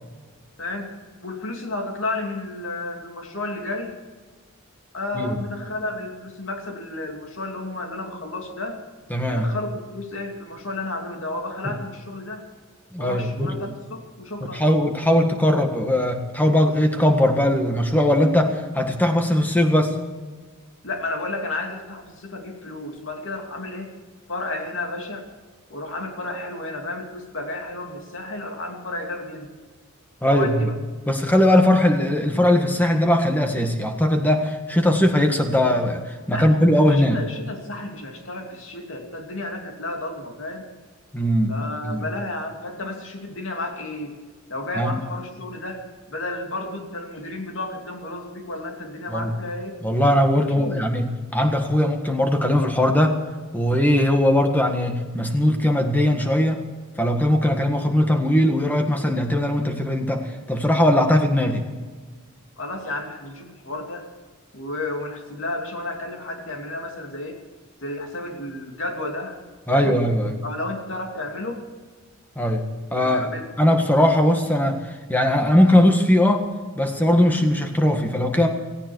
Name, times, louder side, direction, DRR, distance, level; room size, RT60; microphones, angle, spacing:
voice 1, 0.6-0.9 1.2-4.0 4.9-8.8 9.3-12.4 13.0-14.8 20.8-23.9 24.3-25.2 25.7-29.5 30.2-30.8 36.3-40.7 41.5-44.2 44.5-49.8 50.4-50.8 62.6-64.1 64.5-67.4 67.8-69.4 69.7-70.0 70.4-71.6 72.9-73.5, left 2 dB, 60° left, 2 dB, 2.9 m, -32 dB
voice 2, 9.1-9.5 11.6-11.7 12.9-13.7 14.4-19.9 30.2-30.7 31.1-37.2 41.1-41.5 41.8-42.0 44.8-45.0 49.1-49.3 49.8-53.2 53.5-56.6 57.0-61.7 69.7-70.4 72.3-72.6 72.9-73.3 73.6-74.8 75.1-76.5 76.8-78.5, left 1 dB, 10° left, 4 dB, 1.7 m, -20 dB
17.5 x 15.5 x 4.7 m, 1.4 s
head